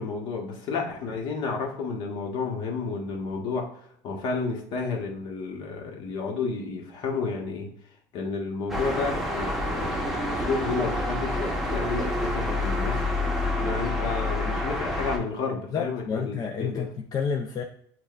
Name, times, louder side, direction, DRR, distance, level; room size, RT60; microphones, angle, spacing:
voice 1, 0.0-3.7 4.0-7.7 8.1-13.1 13.6-16.8, left 4 dB, 60° left, 0 dB, 1.2 m, -31 dB
sound 1, 8.7-15.2, left 1 dB, 5° right, 0.9 m, -28 dB
voice 2, 15.7-17.6, left 6 dB, 40° left, 3 dB, 0.4 m, -30 dB
6.2 x 2.3 x 2.4 m, 0.66 s
supercardioid pair, 105°, 10 cm